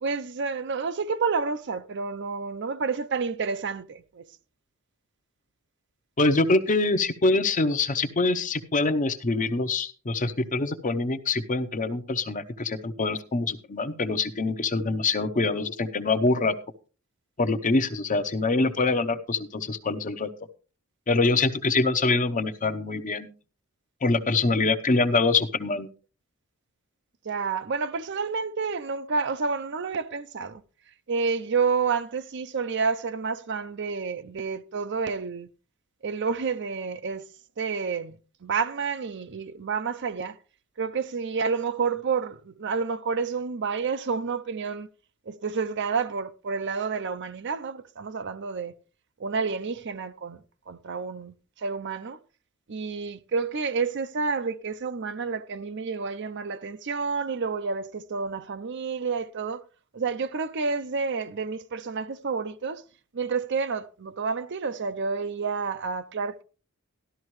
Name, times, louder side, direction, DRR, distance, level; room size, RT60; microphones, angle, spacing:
voice 1, 0.0-4.3 27.2-30.6 31.1-35.5 36.0-37.2 37.6-40.4 40.8-44.9 45.3-48.8 49.2-50.4 50.7-52.2 52.7-59.6 59.9-62.8 63.1-66.4, right 5 dB, 55° right, 0.6 m, -29 dB
voice 2, 6.2-16.6 17.4-20.3 21.1-23.3 24.0-25.9, left 3 dB, 40° left, 0.8 m, -25 dB
13.0 x 12.5 x 3.1 m
head